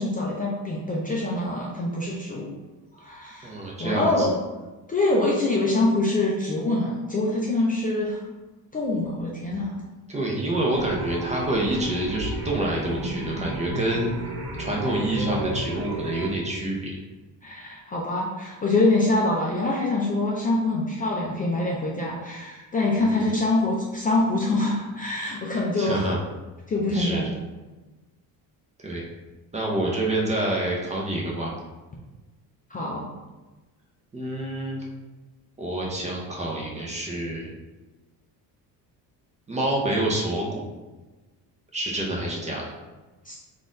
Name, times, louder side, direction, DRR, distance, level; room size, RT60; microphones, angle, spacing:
voice 1, 0.0-2.5 3.0-4.4 4.9-8.2 8.7-9.7 17.4-26.1 26.7-27.2 32.7-33.0 43.3-43.4, left 2 dB, 20° left, -4 dB, 0.4 m, -25 dB
voice 2, 3.4-4.3 10.1-14.1 14.6-16.9 22.9-23.2 25.8-26.2 26.9-27.3 28.8-29.0 29.5-31.5 34.1-34.8 35.6-37.5 39.5-40.7 41.7-42.7, right 1 dB, 15° right, -2 dB, 0.6 m, -27 dB
sound 1, 10.7-16.3, right 1 dB, 65° right, 1.1 m, -33 dB
4.0 x 2.6 x 3.6 m, 1.2 s
cardioid pair, 150°, 39 cm